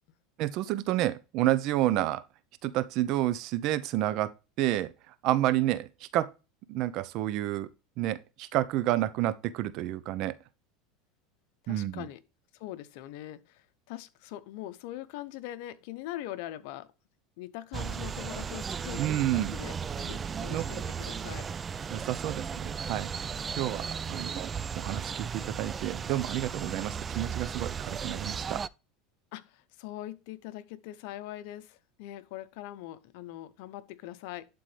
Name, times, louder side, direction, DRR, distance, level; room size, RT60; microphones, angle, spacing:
voice 1, 0.4-2.2 2.6-6.3 6.7-7.7 8.0-10.4 11.7-12.0 19.0-19.5 20.5-20.6 21.9-23.1 23.6-24.5 24.8-28.6, right 14 dB, 55° right, 0.7 m, -30 dB
voice 2, 11.6-12.2 12.5-16.9 17.4-21.5 24.1-24.2 29.3-34.5, left 14 dB, 70° left, 0.8 m, -42 dB
sound 1, 17.7-28.7, right 6 dB, 25° right, 0.3 m, -36 dB
11.5 x 3.8 x 3.3 m
supercardioid pair, 120°, 0 cm